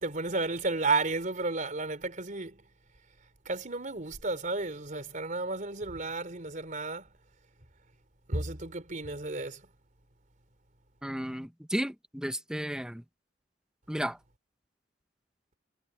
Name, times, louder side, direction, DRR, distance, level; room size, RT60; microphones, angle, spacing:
voice 1, 0.0-2.6 3.5-7.0 8.3-9.6, right 3 dB, 45° right, 3.6 m, -32 dB
voice 2, 11.0-13.0 13.9-14.2, equal, 5° right, 1.0 m, -33 dB
head